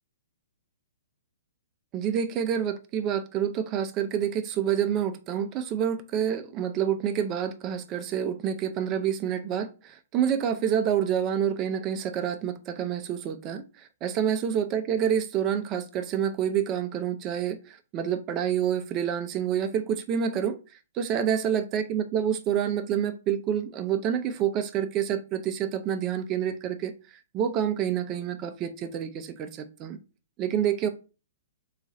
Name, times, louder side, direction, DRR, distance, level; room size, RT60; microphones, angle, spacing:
voice 1, 1.9-13.6 14.0-20.6 21.0-26.9 27.3-30.0 30.4-30.9, right 9 dB, 25° right, 0.5 m, -28 dB
3.8 x 2.4 x 4.1 m
hypercardioid pair, 150°, 0 cm